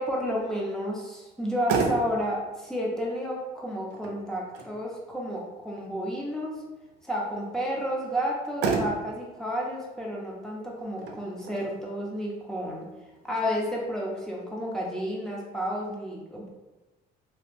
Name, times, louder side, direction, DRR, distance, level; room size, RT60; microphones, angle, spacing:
voice 1, 0.0-6.5 7.0-12.8 13.2-16.5, equal, 5° left, -3 dB, 0.8 m, -31 dB
Motor vehicle (road), 1.3-14.2, right 4 dB, 90° right, 0.5 m, -36 dB
3.0 x 2.2 x 3.3 m, 1.1 s
cardioid pair, 110°, 17 cm